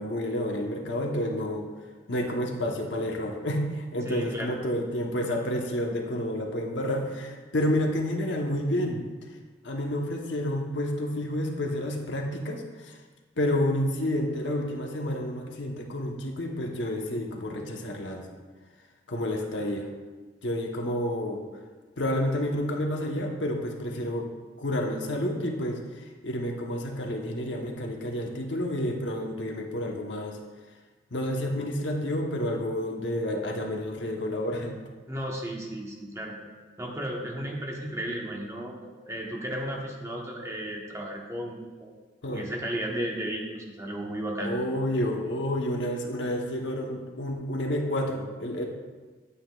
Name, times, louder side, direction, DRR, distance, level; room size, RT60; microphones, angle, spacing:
voice 1, 0.0-1.7 2.1-9.0 9.6-13.0 13.4-18.2 19.1-19.9 20.4-21.4 22.0-24.3 24.6-30.4 31.1-34.8 42.2-42.4 44.4-48.7, left 1 dB, 80° left, 1 dB, 1.1 m, -30 dB
voice 2, 4.0-4.6 20.8-20.9 35.1-36.4 36.8-38.8 39.1-41.9 42.3-44.6, right 1 dB, 15° right, -1 dB, 1.2 m, -34 dB
9.7 x 8.7 x 2.4 m, 1.3 s
head